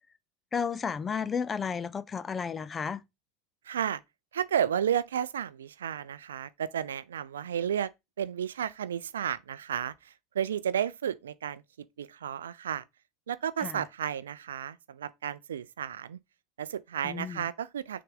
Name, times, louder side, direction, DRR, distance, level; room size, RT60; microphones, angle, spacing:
voice 1, 0.5-3.0 13.6-13.8 17.0-17.4, left 6 dB, 25° left, 0.4 m, -32 dB
voice 2, 3.6-4.0 4.3-7.9 8.2-11.6 12.0-12.8 13.3-16.2 16.6-18.0, right 9 dB, 70° right, 0.4 m, -32 dB
6.5 x 3.8 x 3.8 m
figure-of-eight pair, 80°, 0 cm